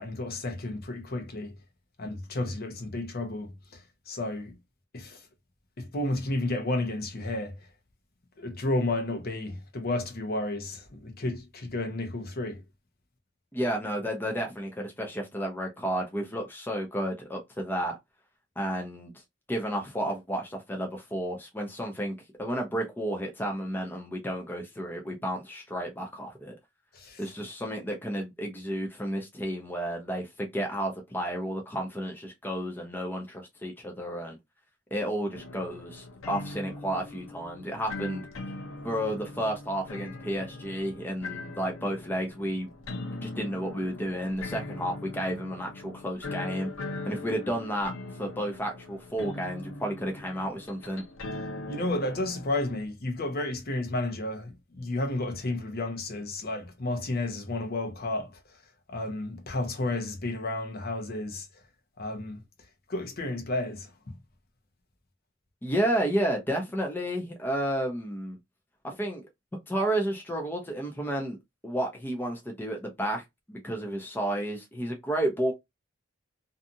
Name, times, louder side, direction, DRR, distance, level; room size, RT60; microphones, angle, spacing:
voice 1, 0.0-1.6 2.0-4.6 4.9-5.3 5.8-7.7 8.4-12.6 26.9-27.3 51.7-58.6 58.9-61.6 62.0-62.4 62.9-64.2, left 2 dB, 50° left, 0.7 m, -32 dB
voice 2, 13.5-18.0 18.6-19.1 19.5-26.5 27.2-34.4 34.9-38.2 38.8-42.7 43.0-46.7 47.1-47.9 48.2-51.0 65.6-68.4 68.8-69.3 69.7-71.4 71.6-75.5, right 1 dB, 10° left, 0.5 m, -32 dB
sound 1, 35.3-52.9, left 2 dB, 85° left, 0.7 m, -41 dB
2.6 x 2.3 x 2.6 m
head